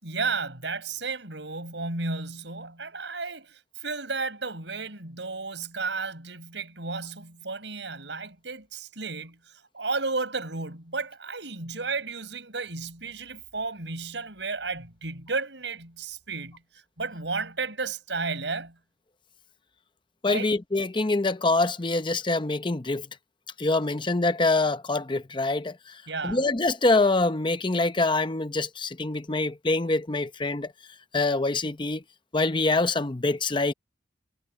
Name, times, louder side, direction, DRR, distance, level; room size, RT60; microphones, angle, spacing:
voice 1, 0.0-9.4 9.7-16.6 17.0-18.8 20.3-20.5 26.1-26.4, right 4 dB, 75° right, 5.9 m, -33 dB
voice 2, 20.2-23.1 23.6-30.7 31.1-32.0 32.3-33.7, left 2 dB, 25° left, 0.7 m, -25 dB
head